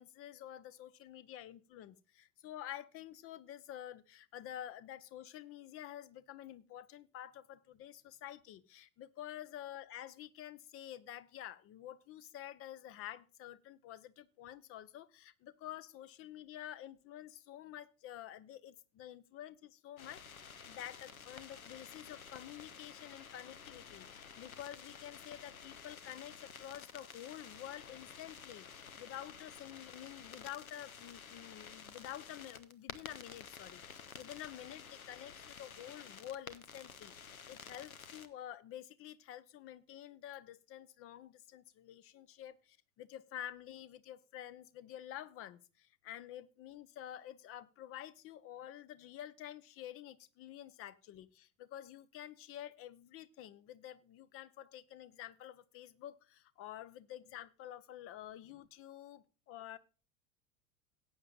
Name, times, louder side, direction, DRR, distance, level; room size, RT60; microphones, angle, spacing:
voice 1, 0.0-20.2 20.6-59.8, left 12 dB, 30° left, 18 dB, 0.8 m, -49 dB
sound 1, 20.0-38.3, left 6 dB, 75° left, 1.2 m, -52 dB
18.0 x 8.8 x 2.4 m, 0.34 s
figure-of-eight pair, 85°, 42 cm